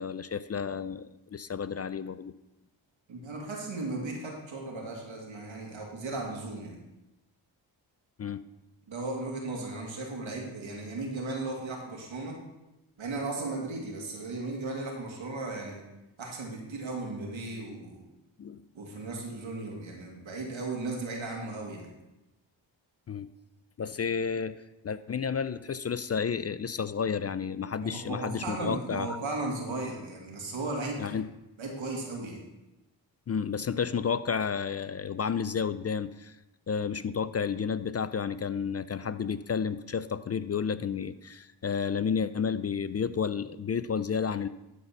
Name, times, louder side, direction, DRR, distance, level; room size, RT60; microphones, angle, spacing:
voice 1, 0.0-2.3 8.2-8.4 18.4-18.6 23.1-23.3 23.8-24.6 24.8-29.2 31.0-31.3 33.3-36.4 36.7-44.5, left 6 dB, 35° left, 14 dB, 0.4 m, -31 dB
voice 2, 3.1-6.8 8.9-12.4 13.0-15.8 16.2-18.0 18.7-21.9 27.8-31.1 31.6-32.4, right 2 dB, 80° right, 0 dB, 2.2 m, -36 dB
12.0 x 4.2 x 5.8 m, 0.97 s
cardioid pair, 50°, 46 cm